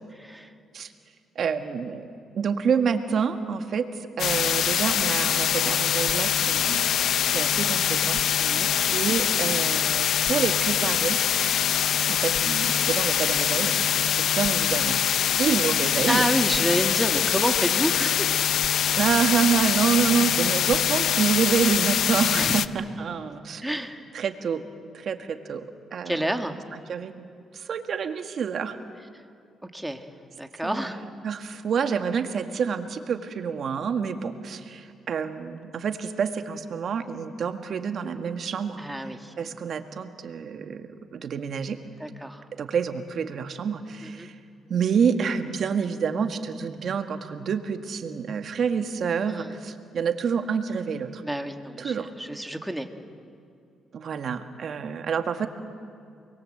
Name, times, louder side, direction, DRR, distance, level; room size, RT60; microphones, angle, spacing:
voice 1, 0.1-0.5 8.4-8.7 16.1-18.5 21.6-21.7 22.3-22.6 23.6-24.0 26.1-26.6 29.1-29.2 29.6-30.1 30.4-31.0 38.8-39.3 42.0-42.5 44.0-44.3 49.3-49.5 51.2-52.9, right 1 dB, 5° right, 5 dB, 1.9 m, -29 dB
voice 2, 1.4-2.1 2.3-3.9 4.2-6.9 7.3-8.5 8.9-11.2 12.1-13.8 14.2-15.0 15.4-16.3 19.0-23.6 24.1-24.6 24.9-25.7 25.9-26.1 26.7-27.2 27.5-28.8 30.6-30.8 31.2-38.8 39.4-41.8 42.5-44.4 44.7-51.2 51.8-52.1 53.9-55.5, right 6 dB, 60° right, 7 dB, 1.7 m, -27 dB
sound 1, 4.2-22.7, left 9 dB, 70° left, 0.7 m, -24 dB
28.0 x 22.0 x 7.9 m, 2.5 s
cardioid pair, 90°, 0 cm